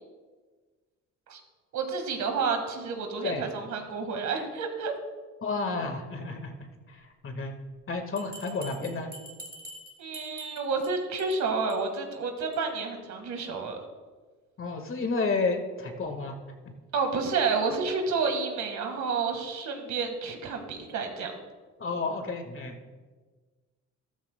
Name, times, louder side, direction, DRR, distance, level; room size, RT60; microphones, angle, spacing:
voice 1, 1.7-4.9 10.0-13.8 16.9-21.3, right 4 dB, 70° right, 4 dB, 1.8 m, -30 dB
voice 2, 5.4-6.5 6.9-7.5 7.9-9.1 14.6-16.3 21.8-22.7, left 3 dB, 45° left, 5 dB, 1.7 m, -31 dB
Bell, 8.2-10.9 11.2-11.4 11.7-11.8 12.1-12.2 12.5-12.6, right 1 dB, 30° right, 2.6 m, -45 dB
13.5 x 13.0 x 2.2 m, 1.4 s
cardioid pair, 90°, 30 cm